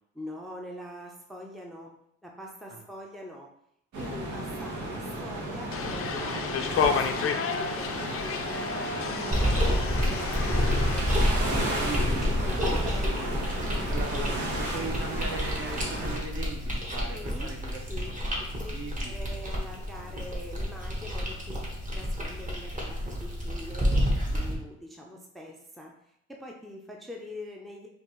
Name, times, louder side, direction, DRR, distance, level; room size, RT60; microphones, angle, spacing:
voice 1, 0.1-1.9 2.2-3.5 4.0-13.5 13.8-14.4 17.1-17.5 17.9-18.1 18.4-18.7 19.0-25.9 26.3-27.9, left 1 dB, ahead, 0 dB, 0.6 m, -43 dB
sound 1, 3.9-16.2, right 1 dB, 75° right, 1.1 m, -34 dB
sound 2, 5.7-11.0, left 6 dB, 45° left, 0.5 m, -31 dB
sound 3, 9.3-24.5, equal, 25° right, 1.3 m, -29 dB
voice 2, 11.7-12.3 13.9-18.4 18.7-19.4, right 3 dB, 45° right, 1 dB, 1.0 m, -39 dB
5.1 x 2.5 x 3.1 m, 0.77 s
cardioid pair, 90°, 30 cm